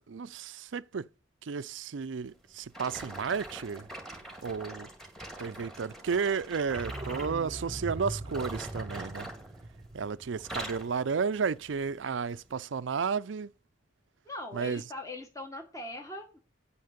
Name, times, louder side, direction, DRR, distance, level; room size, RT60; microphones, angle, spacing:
voice 1, 0.1-1.1 1.4-3.9 4.4-4.9 5.4-9.3 9.9-13.5 14.5-14.8, right 5 dB, 75° right, 0.5 m, -32 dB
sound 1, 2.7-7.4 8.2-10.0 10.3-10.9 11.6-11.8 12.4-12.5, right 1 dB, ahead, 1.9 m, -43 dB
sound 2, 6.7-11.4 11.7-11.8, right 2 dB, 30° right, 0.7 m, -41 dB
voice 2, 14.2-16.4, left 2 dB, 15° left, 1.6 m, -41 dB
9.4 x 6.0 x 6.6 m
head